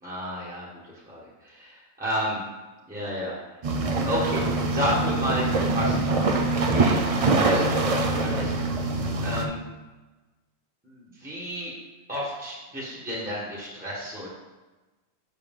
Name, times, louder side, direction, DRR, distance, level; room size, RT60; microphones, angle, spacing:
voice 1, 0.0-2.4 2.9-3.4 4.0-8.5 9.2-9.6 10.8-11.7 12.1-14.3, equal, 5° right, -7 dB, 1.4 m, -32 dB
sound 1, 3.6-9.5, right 3 dB, 55° right, 0.4 m, -24 dB
7.0 x 6.4 x 3.7 m, 1.2 s
omnidirectional pair, 1.4 m